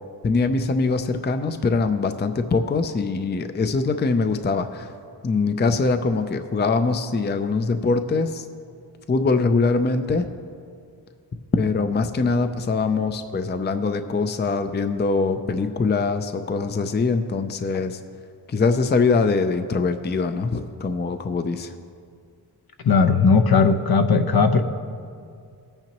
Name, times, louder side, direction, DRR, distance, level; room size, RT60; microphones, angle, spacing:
voice 1, 0.2-4.9 5.2-8.5 9.1-10.3 11.5-18.0 18.5-21.7, left 4 dB, 25° left, 9 dB, 0.5 m, -23 dB
voice 2, 22.8-24.6, left 4 dB, 60° left, 7 dB, 0.8 m, -17 dB
19.5 x 8.8 x 3.0 m, 2.3 s
wide cardioid pair, 100°, 42 cm